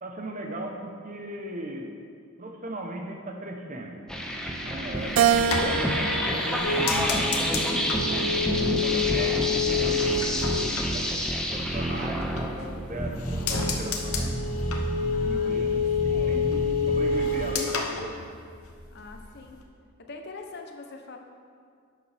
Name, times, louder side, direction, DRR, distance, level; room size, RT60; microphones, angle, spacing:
voice 1, 0.0-1.9 2.4-4.0 4.5-7.8 8.6-14.3 15.1-18.3, right 1 dB, 35° right, 2 dB, 0.8 m, -38 dB
sound 1, 4.1-17.2, equal, 5° left, 0.6 m, -29 dB
sound 2, 5.0-11.8 12.2-12.9 13.2-18.9 19.1-19.6, left 5 dB, 80° left, 0.8 m, -29 dB
Keyboard (musical), 5.2-7.6 8.2-9.5, right 8 dB, 70° right, 0.3 m, -28 dB
voice 2, 15.1-16.4 18.9-19.6 20.1-21.2, left 3 dB, 50° left, 4 dB, 0.7 m, -44 dB
11.0 x 6.7 x 3.4 m, 2.1 s
head